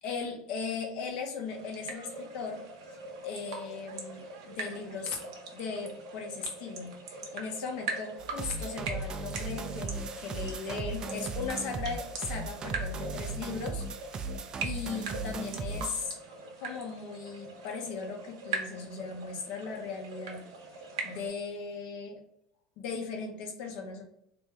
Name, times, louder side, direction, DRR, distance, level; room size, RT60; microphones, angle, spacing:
voice 1, 0.0-2.6 2.9-14.3 14.6-16.1 16.6-20.5 20.7-22.2 22.8-24.0, left 5 dB, 60° left, 2 dB, 0.9 m, -38 dB
sound 1, 1.5-21.3, right 4 dB, 80° right, 0.8 m, -42 dB
sound 2, 8.2-16.1, right 3 dB, 30° right, 0.4 m, -37 dB
3.2 x 2.7 x 3.4 m, 0.75 s
supercardioid pair, 110°, 2 cm